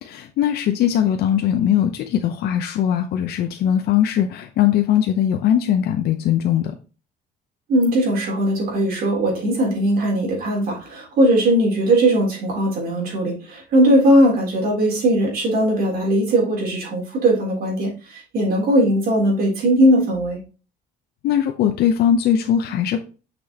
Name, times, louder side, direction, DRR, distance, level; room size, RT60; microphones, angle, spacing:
voice 1, 0.0-6.8 21.2-23.0, left 10 dB, 70° left, 6 dB, 0.7 m, -20 dB
voice 2, 7.7-20.4, right 1 dB, 60° right, -1 dB, 3.4 m, -19 dB
6.2 x 6.2 x 2.9 m, 0.34 s
cardioid pair, 110°, 17 cm